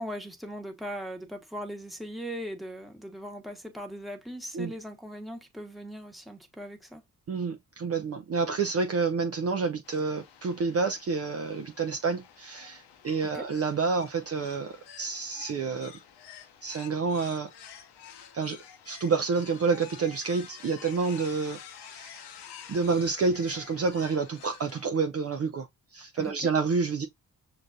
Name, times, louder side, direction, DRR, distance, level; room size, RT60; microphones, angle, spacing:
voice 1, 0.0-7.0 13.2-13.4 26.1-26.5, equal, ahead, 1.2 m, -39 dB
voice 2, 7.3-15.9 16.6-17.5 18.3-18.6 18.9-22.3 22.7-27.1, right 4 dB, 35° right, 0.5 m, -29 dB
sound 1, 9.8-24.9, left 8 dB, 75° left, 0.8 m, -49 dB
6.2 x 2.3 x 2.6 m
hypercardioid pair, 40°, 41 cm